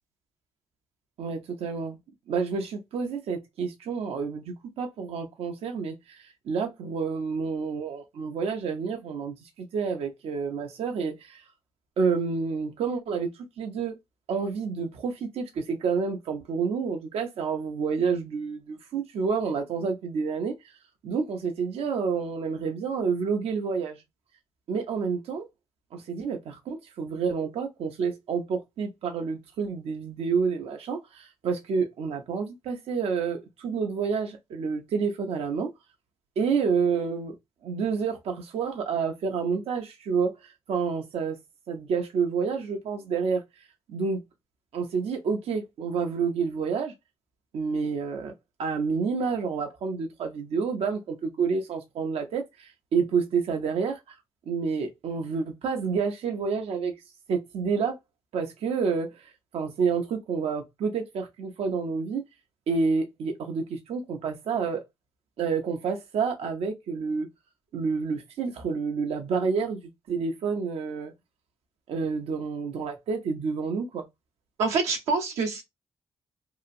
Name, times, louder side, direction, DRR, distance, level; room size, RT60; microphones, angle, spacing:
voice 1, 1.2-2.0 2.3-11.4 12.0-14.0 14.3-20.7 21.0-24.0 24.7-25.5 25.9-35.7 36.4-37.3 37.6-41.4 41.7-44.2 44.7-46.9 47.5-48.3 48.6-54.0 54.5-57.0 57.3-58.0 58.3-62.2 62.7-64.8 65.4-67.3 67.7-69.8 70.1-71.1 71.9-74.1, right 5 dB, 70° right, 0.6 m, -29 dB
voice 2, 74.6-75.6, right 4 dB, 90° right, 0.9 m, -26 dB
2.8 x 2.4 x 2.6 m
supercardioid pair, 55°, 11 cm